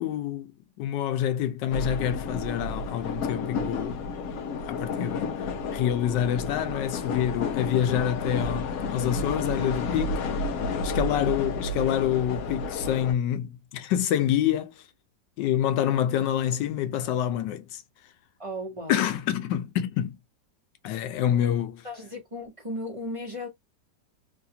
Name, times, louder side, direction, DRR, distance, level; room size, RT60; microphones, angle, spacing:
voice 1, 0.0-4.0 4.5-10.2 10.8-14.8 15.4-17.8 18.9-20.2 20.8-21.9, left 10 dB, 90° left, 1.3 m, -27 dB
sound 1, 1.7-13.1, left 3 dB, 65° left, 1.0 m, -31 dB
voice 2, 18.4-19.1 21.8-23.5, left 1 dB, 25° right, 0.9 m, -36 dB
3.3 x 2.4 x 2.7 m
omnidirectional pair, 1.9 m